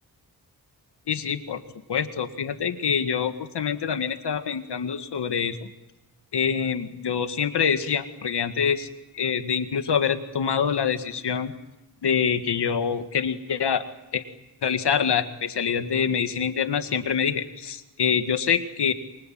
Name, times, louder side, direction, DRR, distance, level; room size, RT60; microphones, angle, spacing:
voice 1, 1.1-1.6 1.9-5.7 6.3-8.9 9.1-11.5 12.0-13.8 14.1-14.2 14.6-18.9, left 7 dB, 90° left, 8 dB, 1.9 m, -25 dB
28.5 x 24.5 x 7.7 m, 0.99 s
cardioid pair, 75°, 39 cm